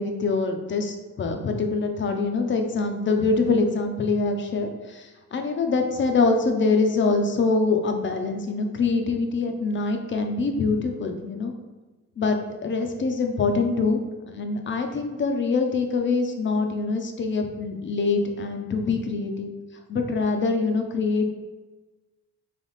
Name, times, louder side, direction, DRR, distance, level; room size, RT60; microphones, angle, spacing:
voice 1, 0.0-11.5 12.2-14.0 14.3-19.5 19.9-21.3, left 4 dB, 40° left, 4 dB, 0.6 m, -24 dB
3.4 x 2.9 x 4.0 m, 1.2 s
cardioid pair, 90°, 30 cm